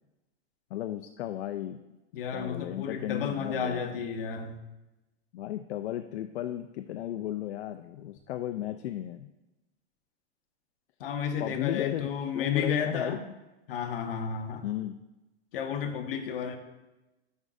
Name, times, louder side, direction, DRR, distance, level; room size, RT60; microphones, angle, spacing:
voice 1, 0.7-1.8 2.3-3.8 5.3-9.3 11.4-12.1 12.3-13.2 14.6-15.0, left 13 dB, 70° left, 8 dB, 0.5 m, -34 dB
voice 2, 2.1-4.6 11.0-13.2 13.7-14.7 15.5-16.6, left 6 dB, 55° left, 6 dB, 0.9 m, -32 dB
9.7 x 5.2 x 2.6 m, 1.0 s
supercardioid pair, 170°, 34 cm